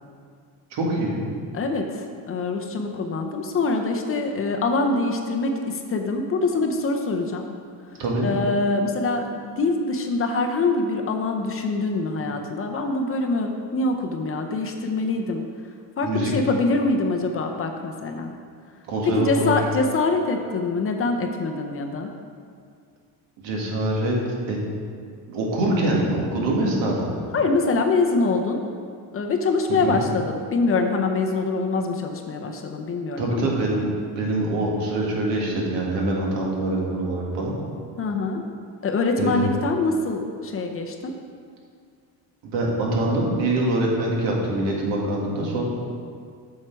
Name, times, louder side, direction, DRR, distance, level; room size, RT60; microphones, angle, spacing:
voice 1, 0.7-1.2 8.0-8.3 16.0-16.3 18.9-19.6 23.4-24.2 24.5-24.6 25.3-27.2 29.7-30.0 33.2-33.8 34.2-37.5 39.2-39.5 42.4-45.6, right 1 dB, 80° right, -2 dB, 2.0 m, -24 dB
voice 2, 1.5-7.4 8.2-15.4 16.0-18.3 19.0-22.1 27.3-28.6 29.1-33.5 38.0-38.4 38.8-41.1, left 3 dB, 30° left, 3 dB, 0.6 m, -24 dB
7.6 x 6.6 x 4.6 m, 2.2 s
cardioid pair, 140°, 43 cm